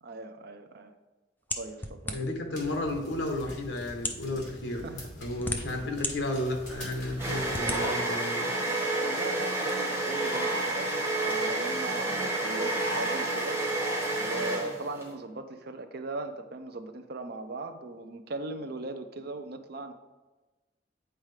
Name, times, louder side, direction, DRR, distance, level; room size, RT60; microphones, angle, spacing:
voice 1, 0.0-1.0 1.5-2.2 4.7-5.0 6.8-7.2 7.7-8.2 8.6-13.6 14.1-19.9, right 2 dB, 55° right, 8 dB, 0.5 m, -39 dB
sound 1, 1.5-2.5 3.3-3.4 3.9-4.3 5.1-6.1 6.6-6.7 7.5-7.8, left 2 dB, 10° left, 0.4 m, -33 dB
voice 2, 2.1-4.9 5.2-8.5, left 1 dB, 70° left, 4 dB, 1.0 m, -33 dB
sound 2, 2.5-7.7, left 1 dB, 45° left, 2.0 m, -45 dB
sound 3, 6.4-15.1, right 2 dB, 15° right, 1.7 m, -30 dB
8.8 x 4.6 x 3.2 m, 1.2 s
head